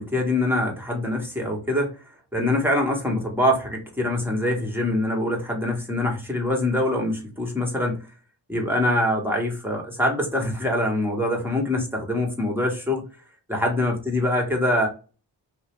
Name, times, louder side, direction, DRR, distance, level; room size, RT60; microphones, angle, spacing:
voice 1, 0.0-2.0 2.3-8.0 8.5-13.0 13.5-14.9, left 1 dB, 5° right, 0 dB, 1.1 m, -24 dB
2.6 x 2.0 x 3.1 m, 0.34 s
cardioid pair, 55°, 44 cm